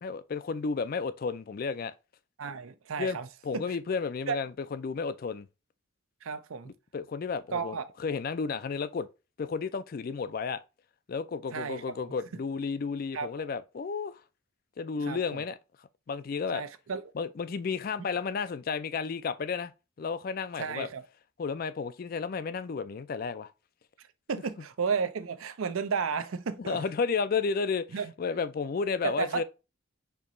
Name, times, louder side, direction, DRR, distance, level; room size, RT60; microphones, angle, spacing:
voice 1, 0.0-1.9 3.0-3.2 3.4-5.5 6.7-9.1 9.4-10.6 11.1-14.2 14.8-15.6 16.1-16.6 17.2-19.7 20.0-20.9 21.4-23.5 26.6-29.4, left 5 dB, 45° left, 0.3 m, -32 dB
voice 2, 2.4-3.3 3.5-3.6 4.3-4.4 6.2-6.7 7.5-7.9 11.5-11.8 13.1-13.3 15.0-15.2 16.5-17.0 20.6-21.0 24.3-26.8 27.9-28.1 29.0-29.4, right 5 dB, 75° right, 0.5 m, -32 dB
4.6 x 2.9 x 2.5 m
head